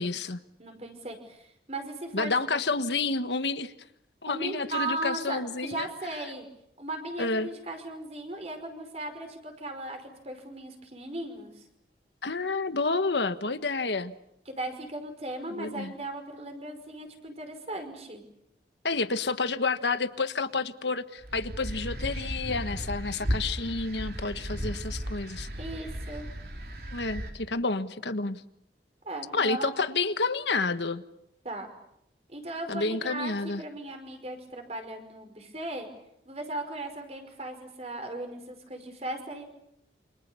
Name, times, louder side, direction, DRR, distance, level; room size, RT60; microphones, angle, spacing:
voice 1, 0.0-0.4 2.1-3.7 4.2-5.9 7.2-7.5 12.2-14.1 15.6-15.9 18.8-25.5 26.9-28.4 29.3-31.0 32.7-33.6, left 3 dB, 85° left, 10 dB, 1.4 m, -29 dB
voice 2, 0.6-2.6 4.3-6.4 6.8-11.6 14.5-18.2 25.6-26.3 29.0-29.7 31.4-31.7 32.3-35.9 36.3-39.4, right 2 dB, 35° right, 6 dB, 5.2 m, -37 dB
sound 1, 21.2-27.3, equal, 60° right, 3.8 m, -35 dB
28.0 x 27.0 x 7.1 m, 0.78 s
head